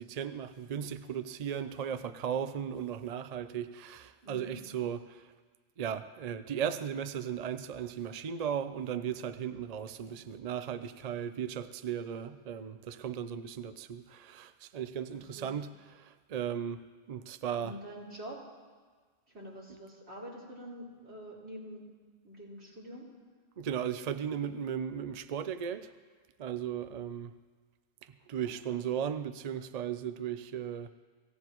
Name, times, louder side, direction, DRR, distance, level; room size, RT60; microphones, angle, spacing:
voice 1, 0.0-5.3 5.8-17.8 23.6-25.9 26.4-27.3 28.0-30.9, right 8 dB, 50° right, 0.5 m, -36 dB
voice 2, 4.2-4.6 15.1-15.5 17.6-18.4 19.3-21.9 22.2-23.1 28.4-28.8, equal, 70° right, 4.5 m, -46 dB
25.5 x 16.0 x 3.0 m
omnidirectional pair, 1.2 m